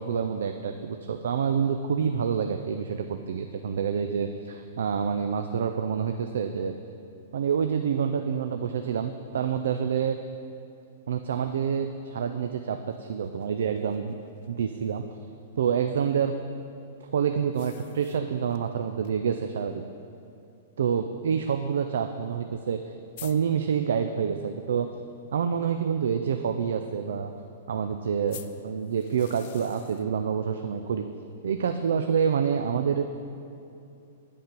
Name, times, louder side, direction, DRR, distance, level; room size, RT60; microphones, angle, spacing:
voice 1, 0.0-6.7 7.3-10.2 11.1-14.2 14.5-15.0 15.6-16.3 17.1-19.8 20.8-22.8 23.2-24.9 25.3-27.3 27.7-31.1 31.4-33.1, right 7 dB, 65° right, 7 dB, 0.3 m, -27 dB
sound 1, 12.9-15.0 17.5-18.7 19.0-19.1 19.5-19.6 20.5-20.6 22.4-22.5 22.7-22.8 23.2-23.4 28.3-30.1, left 12 dB, 55° left, 0.4 m, -48 dB
8.6 x 5.4 x 5.2 m, 2.7 s
figure-of-eight pair, 105°, 0 cm